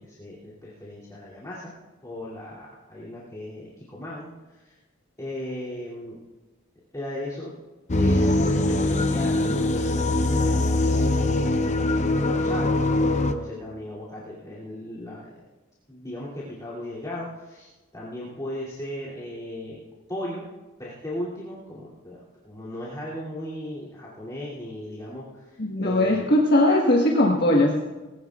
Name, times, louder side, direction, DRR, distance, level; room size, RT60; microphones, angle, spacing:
voice 1, 0.0-1.7 2.0-4.3 4.6-4.7 5.2-6.2 6.9-7.5 8.0-11.5 12.1-12.9 13.3-15.3 15.9-19.8 20.1-20.5 20.8-26.4, left 1 dB, 20° left, -10 dB, 2.8 m, -37 dB
sound 1, 7.9-13.3, left 2 dB, 35° left, 0.7 m, -22 dB
voice 2, 25.6-27.8, left 1 dB, 50° left, -2 dB, 1.5 m, -20 dB
20.5 x 17.0 x 2.4 m, 1.2 s
head